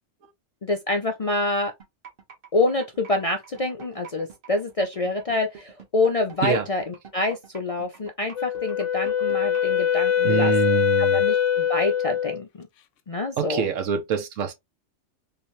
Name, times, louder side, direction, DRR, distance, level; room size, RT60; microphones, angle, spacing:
voice 1, 0.6-1.7 2.5-6.8 7.1-10.5 11.1-12.7 13.1-13.6, left 2 dB, 50° left, 0.4 m, -26 dB
sound 1, 1.8-9.7, right 6 dB, 50° right, 1.4 m, -46 dB
Wind instrument woodwind instrument, 8.4-12.4, left 9 dB, 75° left, 0.9 m, -23 dB
voice 2, 10.2-11.2 13.4-14.5, right 6 dB, 85° right, 1.2 m, -25 dB
3.8 x 2.7 x 3.0 m
omnidirectional pair, 1.3 m